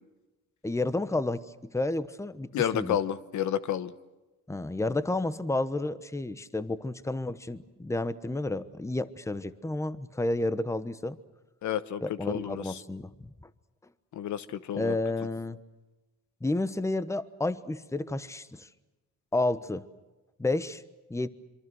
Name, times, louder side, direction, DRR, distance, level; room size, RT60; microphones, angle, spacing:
voice 1, 0.6-3.0 4.5-11.2 12.0-13.1 13.4-13.5 14.8-15.6 16.4-18.7 19.3-19.8 20.4-20.8 21.1-21.3, left 2 dB, 10° left, 15 dB, 1.1 m, -31 dB
voice 2, 2.5-3.9 11.6-12.8 14.1-15.0, left 10 dB, 70° left, 15 dB, 1.1 m, -30 dB
26.5 x 24.0 x 6.3 m, 1.1 s
cardioid pair, 90°, 30 cm